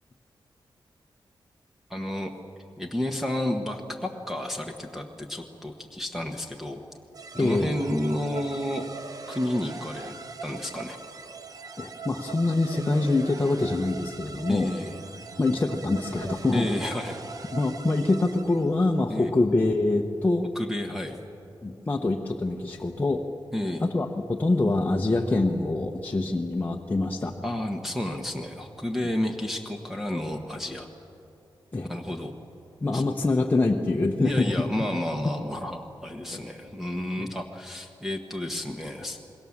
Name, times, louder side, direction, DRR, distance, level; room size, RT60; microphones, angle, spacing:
voice 1, 1.9-2.3 2.8-6.8 7.3-8.9 9.3-10.1 10.4-11.0 14.5-15.0 16.5-17.2 19.1-19.3 20.5-21.2 23.5-23.8 27.4-30.9 31.9-32.3 32.9-33.0 34.2-39.2, left 1 dB, 5° right, 3 dB, 1.2 m, -31 dB
sound 1, 7.1-18.8, right 4 dB, 45° right, 1.0 m, -41 dB
voice 2, 7.4-7.8 11.8-14.7 15.4-16.9 17.5-20.5 21.6-23.2 23.8-27.4 29.0-29.1 31.7-31.9 32.8-34.7 36.3-36.4 37.2-37.3, left 2 dB, 20° left, 0 dB, 1.0 m, -25 dB
27.5 x 21.5 x 7.3 m, 2.8 s
wide cardioid pair, 170°, 9 cm